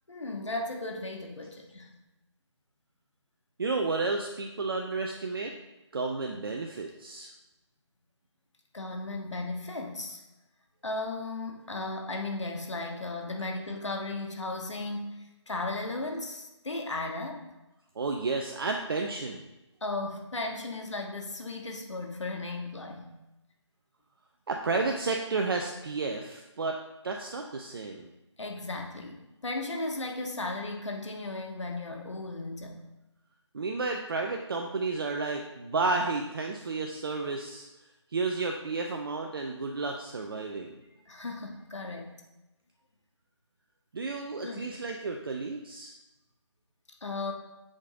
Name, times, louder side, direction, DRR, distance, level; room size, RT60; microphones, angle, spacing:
voice 1, 0.1-1.9 8.7-10.2 10.8-17.4 19.8-23.1 28.4-32.8 41.1-42.2 44.4-44.7 47.0-47.3, left 2 dB, 75° left, 2 dB, 1.4 m, -36 dB
voice 2, 3.6-5.6 5.9-7.3 18.0-19.4 24.5-28.1 33.5-37.7 38.1-40.8 43.9-45.9, right 3 dB, 50° right, 3 dB, 0.7 m, -32 dB
7.3 x 5.1 x 3.8 m, 0.99 s
figure-of-eight pair, 155°, 16 cm